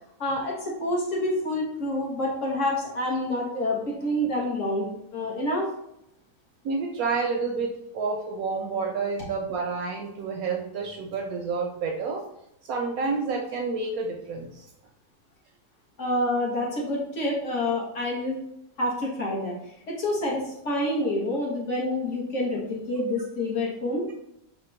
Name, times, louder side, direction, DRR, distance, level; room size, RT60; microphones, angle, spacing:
voice 1, 0.2-5.7 16.0-18.4 18.8-19.6 19.9-24.0, left 1 dB, 50° left, -3 dB, 1.2 m, -27 dB
voice 2, 6.6-12.2 12.6-14.7, right 4 dB, 70° right, 1 dB, 0.9 m, -29 dB
4.2 x 2.2 x 4.3 m, 0.80 s
omnidirectional pair, 1.8 m